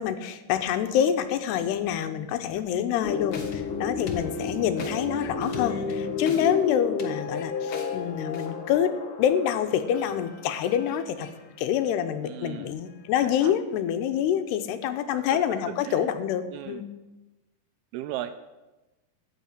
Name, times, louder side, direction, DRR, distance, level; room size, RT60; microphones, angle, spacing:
voice 1, 0.0-11.3 11.6-16.9, left 9 dB, 90° left, 9 dB, 3.0 m, -26 dB
sound 1, 3.0-11.3, left 4 dB, 70° left, 1.3 m, -32 dB
voice 2, 12.2-12.8 13.2-13.6 15.1-16.1 16.5-16.8 17.9-18.4, right 12 dB, 85° right, 10 dB, 2.5 m, -37 dB
13.0 x 6.6 x 9.3 m, 1.1 s
omnidirectional pair, 4.6 m